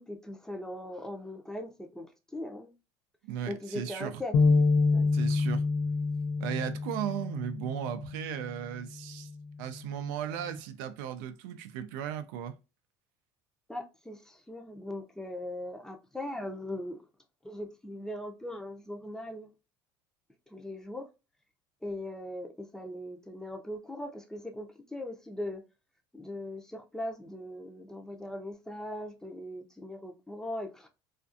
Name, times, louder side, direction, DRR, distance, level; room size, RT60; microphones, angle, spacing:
voice 1, 0.0-2.1 2.3-2.7 3.5-4.4 4.9-5.1 13.7-17.0 17.4-19.5 20.5-21.1 21.8-25.6 26.1-30.9, left 1 dB, 5° left, 0.6 m, -39 dB
voice 2, 3.2-4.1 5.1-5.6 6.4-9.3 9.6-12.5, right 10 dB, 85° right, 0.4 m, -36 dB
sound 1, 4.3-8.6 9.1-9.3 10.1-10.6, left 4 dB, 50° left, 0.4 m, -27 dB
2.4 x 2.3 x 2.5 m
supercardioid pair, 95°, 10 cm